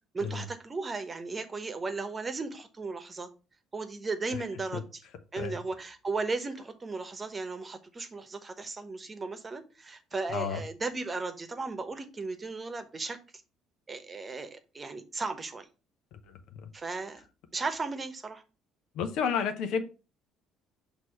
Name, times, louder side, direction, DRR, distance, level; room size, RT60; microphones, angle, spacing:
voice 1, 0.1-3.3 3.7-5.0 5.3-13.2 13.9-15.7 16.7-17.2 17.5-18.4, right 3 dB, 30° right, 8 dB, 1.1 m, -36 dB
voice 2, 10.3-10.6 16.3-16.4 18.9-19.8, left 6 dB, 65° left, 9 dB, 0.8 m, -31 dB
6.1 x 2.9 x 5.6 m, 0.33 s
hypercardioid pair, 55°, 0 cm